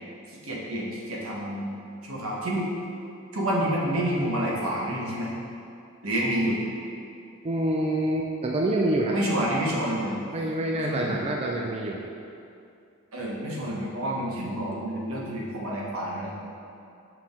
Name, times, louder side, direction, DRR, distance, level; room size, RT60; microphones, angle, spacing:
voice 1, 0.3-1.7 2.0-2.7 3.3-5.3 6.0-6.6 9.1-10.2 10.7-11.2 13.1-16.3, right 1 dB, 80° right, -4 dB, 1.2 m, -28 dB
voice 2, 7.4-9.2 10.3-12.0, right 1 dB, 30° right, 0 dB, 0.4 m, -26 dB
5.6 x 4.8 x 3.6 m, 2.5 s
head